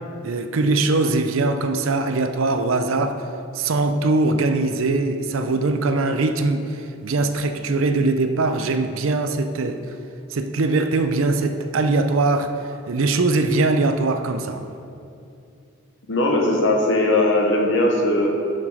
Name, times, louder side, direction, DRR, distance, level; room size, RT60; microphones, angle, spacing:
voice 1, 0.2-3.2 3.5-9.8 10.3-12.5 12.9-14.6, right 3 dB, 80° right, 8 dB, 0.5 m, -21 dB
voice 2, 16.1-18.3, left 1 dB, 65° left, 0 dB, 1.0 m, -19 dB
7.1 x 6.5 x 4.8 m, 2.5 s
head